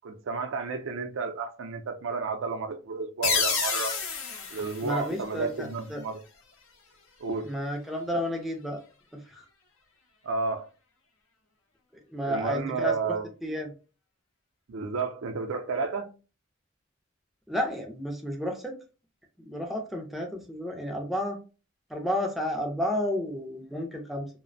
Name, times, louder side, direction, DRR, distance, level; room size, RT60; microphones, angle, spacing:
voice 1, 0.0-4.0 4.5-6.2 7.2-7.5 10.2-10.7 12.2-13.3 14.7-16.1, right 4 dB, 75° right, 0.4 m, -32 dB
sound 1, 3.2-5.8, left 5 dB, 80° left, 0.6 m, -30 dB
voice 2, 4.8-6.0 7.4-8.8 9.1-9.5 12.1-12.9 13.4-13.7 17.5-18.8 19.4-21.4 21.9-24.3, equal, ahead, 0.4 m, -31 dB
2.4 x 2.0 x 2.5 m
head